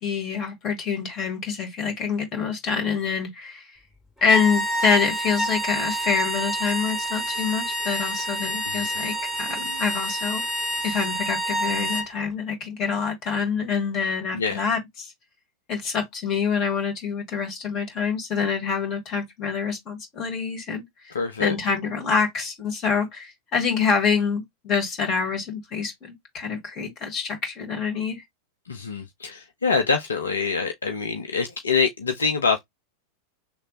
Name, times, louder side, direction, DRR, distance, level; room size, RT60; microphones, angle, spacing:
voice 1, 0.0-3.8 4.2-10.4 10.8-15.1 15.7-21.1 21.4-28.2, left 6 dB, 35° left, 1.8 m, -26 dB
sound 1, 4.2-12.1, right 1 dB, 10° left, 2.1 m, -28 dB
voice 2, 21.1-21.5 28.7-32.6, left 5 dB, 70° left, 0.6 m, -25 dB
3.2 x 2.1 x 4.0 m
figure-of-eight pair, 90°, 0 cm